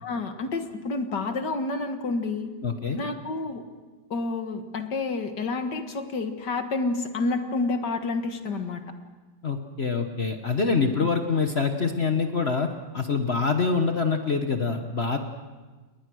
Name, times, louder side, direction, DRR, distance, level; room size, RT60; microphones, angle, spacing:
voice 1, 0.0-2.5 3.0-3.6 4.1-8.8 11.0-11.1, left 3 dB, 75° left, 7 dB, 2.3 m, -29 dB
voice 2, 2.6-3.0 9.4-12.7 12.9-15.2, left 4 dB, 40° left, 5 dB, 1.3 m, -25 dB
29.5 x 21.0 x 6.3 m, 1.3 s
omnidirectional pair, 1.9 m